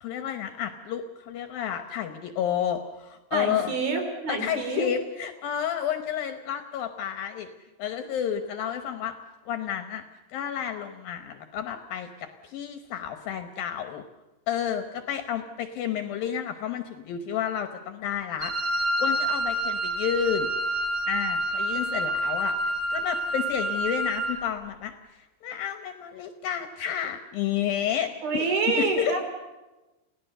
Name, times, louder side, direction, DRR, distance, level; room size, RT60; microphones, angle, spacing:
voice 1, 0.0-3.7 4.3-7.5 7.8-9.2 9.5-10.0 10.3-14.0 14.5-20.5 21.1-22.6 22.9-28.5 28.8-29.2, left 9 dB, 70° left, 7 dB, 2.4 m, -31 dB
voice 2, 3.3-4.9 28.2-29.2, right 4 dB, 60° right, 5 dB, 4.9 m, -27 dB
Wind instrument woodwind instrument, 18.4-24.4, right 1 dB, 35° right, 1.5 m, -28 dB
29.5 x 17.5 x 6.8 m, 1.1 s
omnidirectional pair, 5.0 m